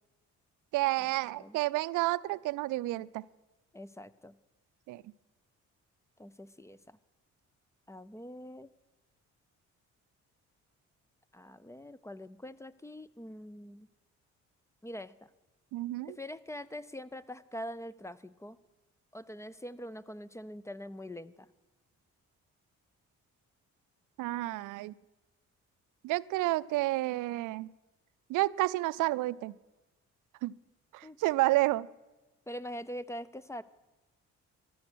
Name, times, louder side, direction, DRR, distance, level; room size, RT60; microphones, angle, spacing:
voice 1, 0.7-3.2 4.9-5.0 15.7-16.2 24.2-24.9 26.0-27.7 28.3-29.5 30.4-30.5 30.9-31.9, right 18 dB, 85° right, 19 dB, 0.5 m, -30 dB
voice 2, 3.7-4.3 6.2-7.0 7.9-8.7 11.3-13.9 14.8-15.3 16.1-18.6 19.1-21.5 31.0-31.2 32.5-33.6, equal, 10° left, 17 dB, 0.5 m, -44 dB
14.0 x 13.0 x 6.2 m, 1.1 s
cardioid pair, 90°, 30 cm